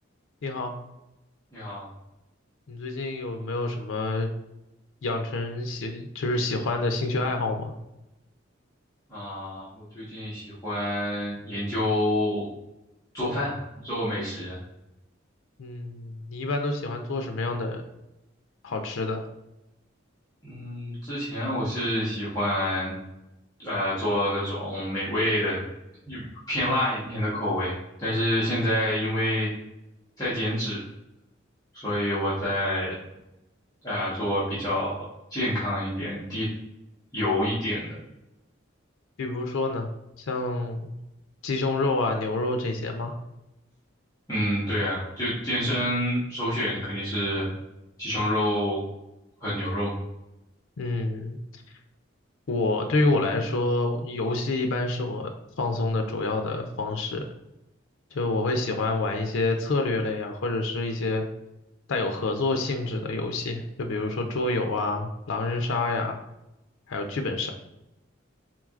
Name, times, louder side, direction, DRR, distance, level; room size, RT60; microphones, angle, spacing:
voice 1, 1.5-1.8 9.1-12.4 13.1-14.5 20.4-22.9 23.6-25.6 26.1-27.7 28.0-29.5 30.2-30.8 31.7-32.9 33.8-34.9 35.3-36.5 37.1-37.9 44.3-47.5 48.0-48.8 49.4-49.9, left 1 dB, 20° left, -12 dB, 1.2 m, -27 dB
voice 2, 2.7-4.3 5.0-7.7 15.6-17.8 18.6-19.2 39.2-39.9 40.3-40.9 41.4-43.1 50.8-51.4 52.5-57.2 58.1-61.2 61.9-66.2 66.9-67.5, left 2 dB, 80° left, 5 dB, 0.5 m, -27 dB
4.5 x 3.9 x 2.4 m, 0.91 s
head